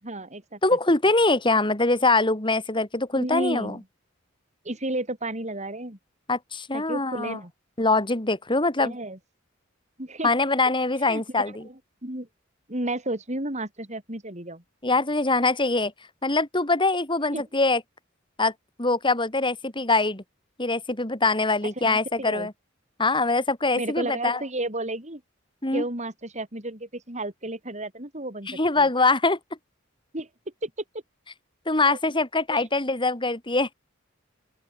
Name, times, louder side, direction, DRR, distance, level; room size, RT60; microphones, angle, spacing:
voice 1, 0.0-0.6 3.1-3.8 4.6-6.0 6.7-7.5 8.8-9.2 10.0-10.3 11.1-12.3 12.7-14.6 17.3-17.4 21.8-22.5 23.7-25.2 25.7-28.9 30.1-30.3 30.6-30.7 31.8-32.0 32.5-32.6, right 1 dB, 35° right, 6.5 m, -32 dB
voice 2, 0.6-3.8 6.3-7.4 7.8-8.9 10.2-11.6 14.8-15.9 16.2-17.8 18.4-18.5 18.8-20.2 20.6-22.5 23.0-24.4 25.6-25.8 28.5-29.4 31.7-33.7, left 3 dB, 25° left, 3.5 m, -23 dB
open air
head